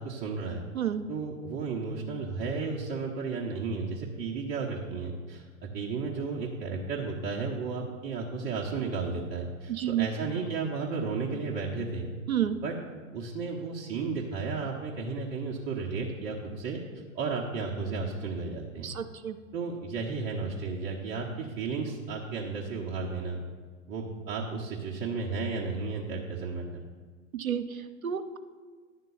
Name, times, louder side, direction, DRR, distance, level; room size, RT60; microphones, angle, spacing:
voice 1, 0.0-0.6 1.1-12.1 12.6-12.7 13.1-16.8 17.1-18.9 19.5-23.4 23.9-26.8, right 4 dB, 30° right, -4 dB, 0.9 m, -33 dB
voice 2, 9.7-10.1 12.3-12.6 18.8-19.4 27.3-28.4, right 10 dB, 85° right, 9 dB, 0.7 m, -30 dB
10.5 x 3.7 x 6.9 m, 1.5 s
figure-of-eight pair, 105°, 41 cm